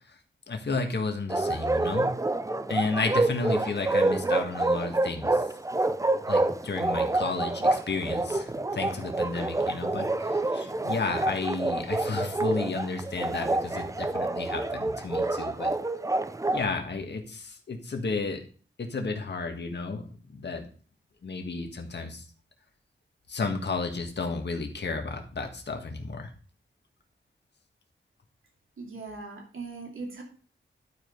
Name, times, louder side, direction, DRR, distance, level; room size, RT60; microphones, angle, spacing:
voice 1, 0.5-2.1 2.7-5.4 6.3-15.7 16.5-18.4 18.8-20.6 21.2-22.2 23.3-26.3, left 4 dB, 60° left, 4 dB, 1.6 m, -32 dB
Bark, 1.3-16.6, right 2 dB, 15° right, 0.5 m, -27 dB
voice 2, 28.8-30.2, right 3 dB, 90° right, 0 dB, 2.5 m, -39 dB
12.0 x 4.9 x 5.3 m, 0.41 s
wide cardioid pair, 125°, 20 cm